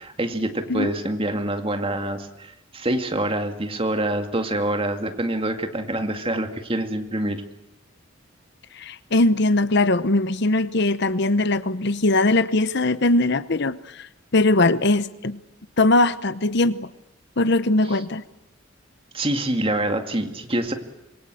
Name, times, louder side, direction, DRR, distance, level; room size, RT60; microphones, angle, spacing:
voice 1, 0.0-7.4 19.1-20.7, right 1 dB, 25° right, 6 dB, 2.2 m, -26 dB
voice 2, 8.7-15.4 15.8-16.9 17.4-18.2, left 2 dB, 55° left, 14 dB, 0.9 m, -20 dB
26.5 x 22.5 x 7.8 m, 1.0 s
head